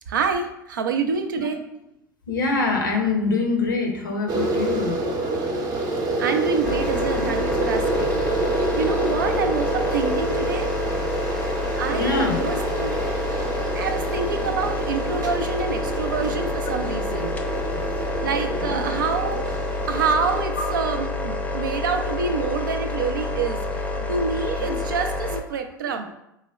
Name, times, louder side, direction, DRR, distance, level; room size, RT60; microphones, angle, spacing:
voice 1, 0.1-1.6 6.2-8.3 8.5-10.7 11.8-13.0 13.8-17.4 18.2-19.5 19.9-23.6 24.1-26.1, right 5 dB, 80° right, 7 dB, 0.4 m, -27 dB
voice 2, 2.3-4.9 7.2-7.3 11.9-12.4 18.2-18.8 23.9-24.1 24.7-24.8, left 3 dB, 85° left, 2 dB, 0.6 m, -25 dB
sound 1, 4.3-20.4, right 2 dB, 35° right, 0.6 m, -28 dB
sound 2, 6.6-25.4, left 2 dB, 15° left, 0.4 m, -28 dB
4.8 x 2.1 x 2.3 m, 0.82 s
hypercardioid pair, 75°, 11 cm